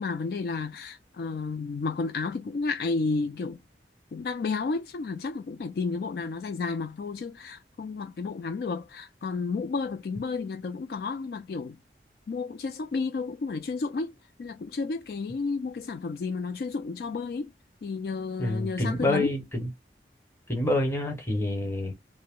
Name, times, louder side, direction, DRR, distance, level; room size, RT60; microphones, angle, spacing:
voice 1, 0.0-3.6 4.1-11.8 12.3-14.1 14.4-17.5 17.8-19.3, left 4 dB, 55° left, 0.3 m, -32 dB
voice 2, 18.4-19.7 20.5-21.9, left 1 dB, 15° left, 1.0 m, -27 dB
2.7 x 2.1 x 3.6 m
head